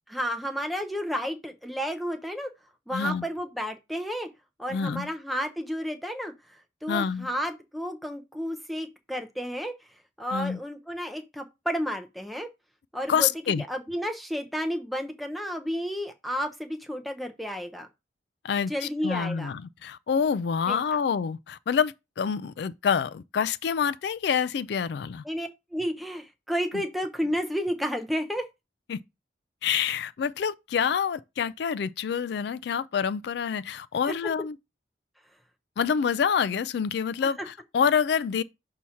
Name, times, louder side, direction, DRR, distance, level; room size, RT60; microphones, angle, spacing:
voice 1, 0.1-2.5 2.9-4.3 4.6-9.7 10.2-12.5 12.9-13.3 13.6-17.9 18.7-19.5 20.7-20.8 25.2-28.5 34.1-34.2, equal, ahead, 0.5 m, -32 dB
voice 2, 2.9-3.3 4.7-5.1 6.9-7.3 10.3-10.6 13.1-13.6 18.4-18.7 19.0-25.2 28.9-29.0 29.6-34.6 35.8-38.4, left 7 dB, 65° left, 0.3 m, -27 dB
6.2 x 2.8 x 5.6 m
head